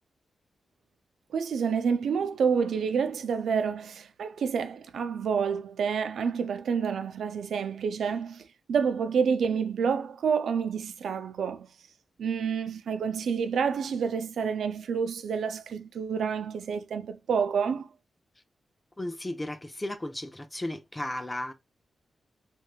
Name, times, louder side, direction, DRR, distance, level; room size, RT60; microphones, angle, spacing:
voice 1, 1.3-8.4 8.7-11.7 12.2-17.9, right 6 dB, 85° right, 0.4 m, -28 dB
voice 2, 19.0-21.5, left 1 dB, 15° left, 0.6 m, -34 dB
3.3 x 3.0 x 2.4 m
wide cardioid pair, 105°, 0 cm